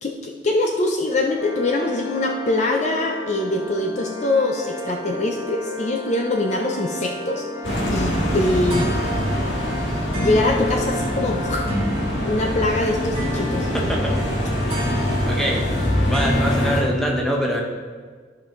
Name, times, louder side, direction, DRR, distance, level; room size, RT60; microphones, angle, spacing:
voice 1, 0.0-7.4 7.9-8.8 10.1-11.7 12.2-13.7, left 2 dB, 40° left, 1 dB, 0.5 m, -23 dB
sound 1, 1.4-16.8, equal, 30° right, 1.8 m, -30 dB
sound 2, 7.6-16.8, left 1 dB, 80° left, 1.7 m, -25 dB
voice 2, 13.7-14.2 14.7-14.9 15.3-15.7 16.0-17.6, equal, ahead, -1 dB, 1.0 m, -24 dB
13.0 x 5.1 x 3.1 m, 1.5 s
head